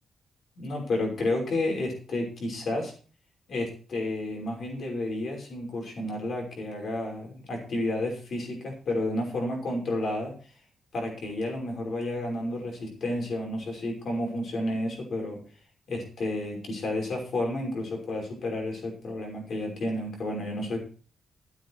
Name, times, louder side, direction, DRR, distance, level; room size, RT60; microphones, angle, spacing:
voice 1, 0.6-2.9 3.5-10.3 10.9-15.4 15.9-20.8, left 1 dB, 50° left, 1 dB, 5.7 m, -31 dB
13.5 x 9.1 x 4.8 m, 0.39 s
wide cardioid pair, 175°, 0 cm